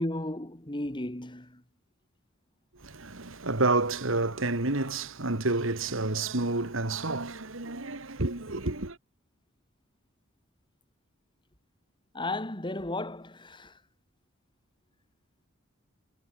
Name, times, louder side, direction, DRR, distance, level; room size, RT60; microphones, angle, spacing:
voice 1, 0.0-1.6 12.1-13.7, left 1 dB, 25° left, 2.2 m, -34 dB
voice 2, 2.8-9.0, right 2 dB, 70° right, 2.4 m, -29 dB
head